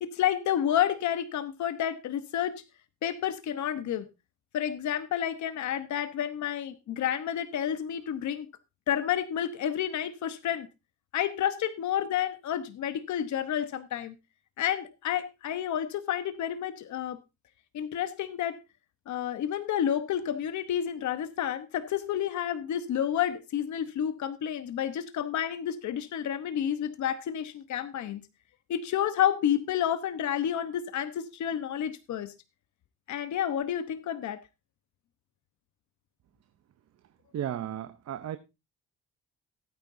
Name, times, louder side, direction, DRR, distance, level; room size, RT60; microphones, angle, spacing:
voice 1, 0.0-2.6 3.0-4.1 4.5-8.5 8.9-10.7 11.1-14.1 14.6-17.2 17.7-18.6 19.1-28.2 28.7-32.3 33.1-34.4, left 10 dB, 70° left, 1.1 m, -30 dB
voice 2, 37.3-38.4, right 10 dB, 55° right, 0.8 m, -34 dB
16.5 x 9.6 x 2.7 m
cardioid pair, 90°, 30 cm